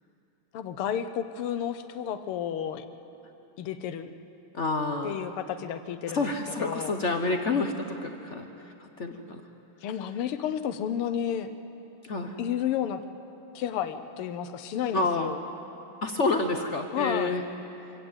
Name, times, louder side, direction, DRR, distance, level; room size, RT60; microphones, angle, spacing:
voice 1, 0.5-2.9 3.6-4.1 5.0-6.3 6.6-6.9 9.8-11.5 12.4-13.0 13.6-15.4 16.9-17.4, left 9 dB, 85° left, 10 dB, 1.8 m, -31 dB
voice 2, 4.5-5.2 6.1-9.4 12.0-12.4 14.9-15.3 16.0-17.4, left 3 dB, 50° left, 5 dB, 0.9 m, -29 dB
25.5 x 17.0 x 7.9 m, 3.0 s
omnidirectional pair, 2.4 m